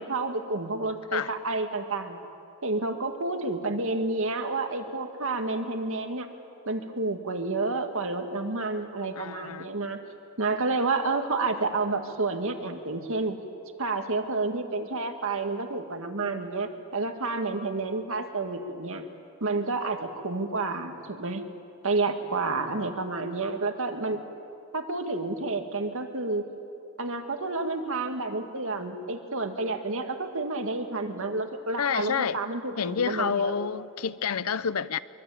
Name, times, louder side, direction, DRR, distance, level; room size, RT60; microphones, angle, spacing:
voice 1, 0.0-2.2 2.6-6.3 6.7-10.0 10.4-13.4 13.8-19.0 19.4-21.4 21.8-24.2 24.7-26.4 27.0-33.5, right 3 dB, 65° right, 2.0 m, -30 dB
voice 2, 9.2-9.6 31.8-32.4 32.8-35.0, left 6 dB, 75° left, 0.7 m, -28 dB
24.0 x 23.5 x 8.6 m
head